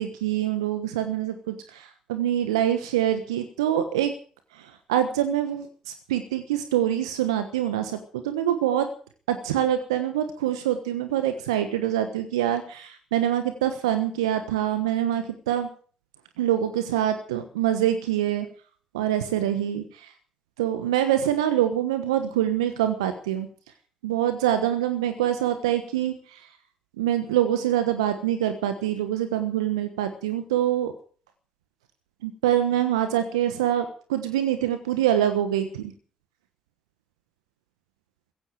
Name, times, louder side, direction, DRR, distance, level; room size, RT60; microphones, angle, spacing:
voice 1, 0.0-4.1 4.5-8.9 9.3-15.7 16.4-18.5 18.9-20.1 20.6-23.5 24.0-26.5 27.0-30.9 32.2-35.9, right 11 dB, 80° right, 9 dB, 1.2 m, -25 dB
16.0 x 16.0 x 5.0 m, 0.44 s
figure-of-eight pair, 40°, 3 cm